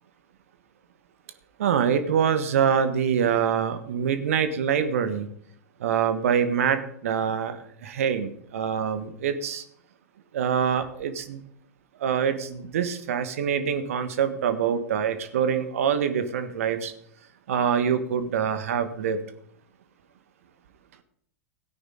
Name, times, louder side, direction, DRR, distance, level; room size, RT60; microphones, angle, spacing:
voice 1, 1.6-5.3 5.8-9.6 10.3-11.4 12.0-16.9 17.5-19.2, right 7 dB, 65° right, 10 dB, 1.4 m, -25 dB
17.0 x 9.4 x 3.8 m, 0.68 s
figure-of-eight pair, 95°, 8 cm